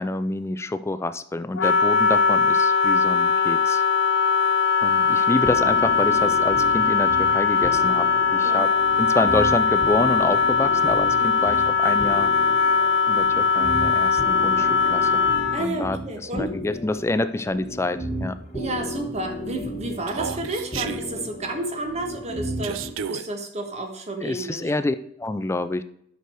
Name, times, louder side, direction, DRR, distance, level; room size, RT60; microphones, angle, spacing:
voice 1, 0.0-3.8 4.8-8.7 9.0-12.3 13.1-15.2 15.6-16.0 16.3-18.4 24.2-25.8, left 2 dB, 15° left, 13 dB, 0.3 m, -27 dB
Wind instrument woodwind instrument, 1.6-15.7, left 5 dB, 60° left, 0.7 m, -20 dB
voice 2, 5.0-5.4 8.4-8.7 11.2-11.4 15.5-16.5 18.5-24.7, right 2 dB, 35° right, 4 dB, 1.4 m, -31 dB
sound 1, 5.5-22.9, left 1 dB, 35° left, 1.3 m, -34 dB
Human voice, 20.1-21.0 22.6-23.3, right 7 dB, 85° right, 0.5 m, -31 dB
9.3 x 6.4 x 4.5 m, 0.71 s
head